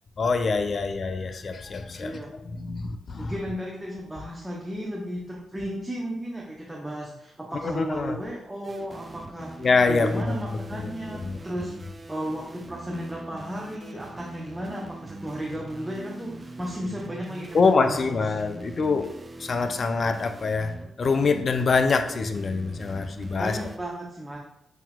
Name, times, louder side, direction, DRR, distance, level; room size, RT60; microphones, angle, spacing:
voice 1, 0.2-2.2 2.5-3.3 7.6-8.2 9.6-10.4 10.7-11.4 17.5-19.1 19.4-20.7 21.0-23.6, left 4 dB, 55° left, 8 dB, 0.3 m, -25 dB
voice 2, 2.0-2.3 3.2-9.5 9.9-11.7 12.1-18.3 23.4-24.4, equal, 15° right, -3 dB, 0.7 m, -34 dB
sound 1, 8.6-23.8, right 2 dB, 30° right, 0.3 m, -43 dB
5.8 x 2.8 x 2.2 m, 0.83 s
cardioid pair, 60°, 0 cm